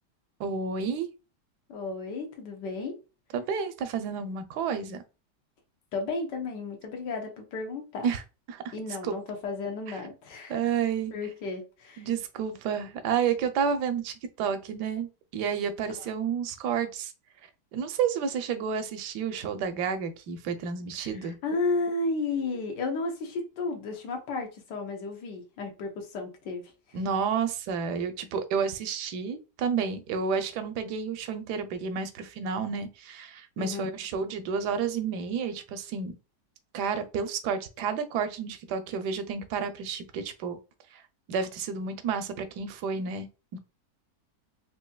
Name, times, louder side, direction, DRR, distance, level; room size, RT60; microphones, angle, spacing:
voice 1, 0.4-1.1 3.3-5.0 8.0-8.2 8.5-8.7 9.0-9.2 9.9-10.0 10.5-11.1 12.0-15.1 15.3-17.1 17.7-21.4 26.9-36.1 36.7-40.6 40.9-41.0 41.3-43.3 43.5-43.6, right 6 dB, 80° right, 1.2 m, -30 dB
voice 2, 1.7-2.9 5.9-8.1 8.7-10.6 11.1-12.1 21.0-26.7 33.6-33.9, left 3 dB, 90° left, 1.5 m, -33 dB
4.6 x 2.8 x 2.2 m
omnidirectional pair, 1.8 m